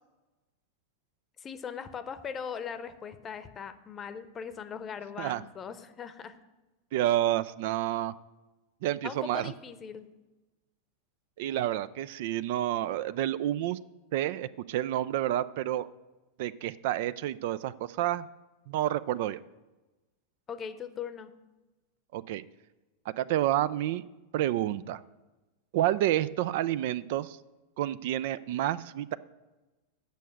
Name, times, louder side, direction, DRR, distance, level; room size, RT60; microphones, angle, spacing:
voice 1, 1.4-6.4 9.0-10.1 20.5-21.3, left 7 dB, 25° left, 12 dB, 0.8 m, -40 dB
voice 2, 6.9-8.1 8.8-9.5 11.4-13.8 14.1-15.9 16.4-18.3 18.7-19.4 22.1-22.4 23.2-24.0 24.3-25.0 25.7-27.4 27.8-29.1, right 13 dB, 50° right, 16 dB, 0.3 m, -29 dB
8.3 x 6.5 x 7.9 m, 1.1 s
figure-of-eight pair, 90°, 0 cm